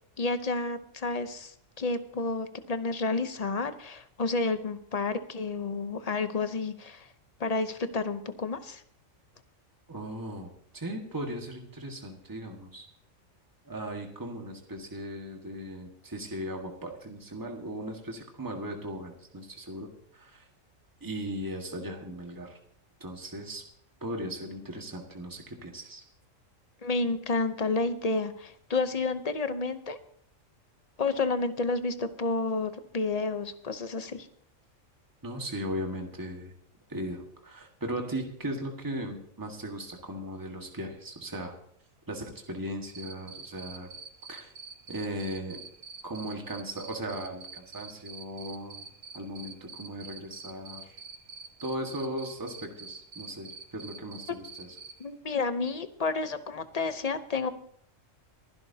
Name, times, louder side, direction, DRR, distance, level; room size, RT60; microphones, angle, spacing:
voice 1, 0.2-1.5 1.8-7.1 7.4-8.8 26.8-30.0 31.0-34.3 55.0-57.5, left 3 dB, 35° left, 10 dB, 0.7 m, -30 dB
voice 2, 9.9-10.5 10.7-12.9 13.6-19.9 20.1-20.4 21.0-22.6 23.0-23.6 24.0-26.0 35.2-36.5 36.9-41.5 42.1-43.9 44.3-44.5 44.9-45.6 46.0-48.8 49.1-51.0 51.6-54.8, right 1 dB, 15° right, 2 dB, 1.6 m, -37 dB
Cricket, 42.9-54.9, right 5 dB, 75° right, 1.6 m, -44 dB
23.0 x 11.5 x 2.8 m, 0.63 s
omnidirectional pair, 1.4 m